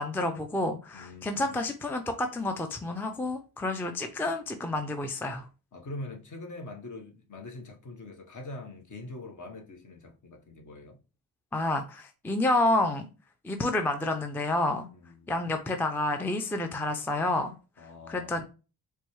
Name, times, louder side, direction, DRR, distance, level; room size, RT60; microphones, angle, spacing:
voice 1, 0.0-5.5 11.5-13.1 13.4-14.9 15.3-17.5 18.1-18.4, left 2 dB, 5° left, 0.4 m, -29 dB
voice 2, 0.9-1.6 5.7-11.0 14.9-15.6 17.8-18.4, left 2 dB, 45° left, 1.2 m, -43 dB
4.3 x 2.3 x 3.0 m
supercardioid pair, 65°, 43 cm